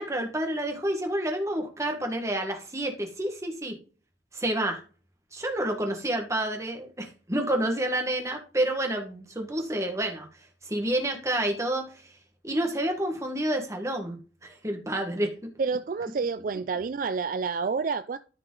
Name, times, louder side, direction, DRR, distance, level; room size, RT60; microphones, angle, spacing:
voice 1, 0.0-3.8 4.3-4.8 5.3-10.3 10.6-12.1 12.4-15.3 15.7-15.8, right 1 dB, 15° right, 1.5 m, -29 dB
voice 2, 15.6-18.2, right 5 dB, 45° right, 0.3 m, -29 dB
13.5 x 4.9 x 3.9 m
head